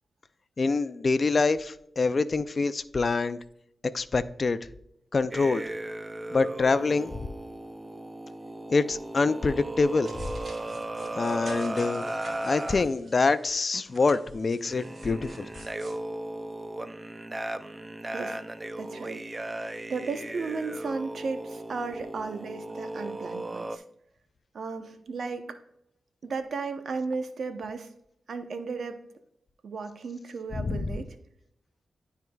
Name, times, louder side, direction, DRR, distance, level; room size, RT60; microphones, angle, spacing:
voice 1, 0.6-3.4 3.9-4.6 5.1-5.6 6.3-7.3 8.7-10.3 11.2-12.0 12.4-15.5 30.5-30.9, left 4 dB, 50° left, 0.4 m, -25 dB
sound 1, 5.3-12.9 13.7-14.0 14.6-23.8, right 1 dB, 25° right, 0.5 m, -36 dB
sound 2, 10.0-13.5 13.9-16.0, right 1 dB, 60° right, 2.6 m, -48 dB
voice 2, 18.8-19.6 19.9-23.8 24.5-25.6 26.2-27.9 28.3-29.0 29.6-31.2, right 4 dB, 75° right, 0.8 m, -35 dB
11.5 x 4.6 x 2.3 m
cardioid pair, 55°, 0 cm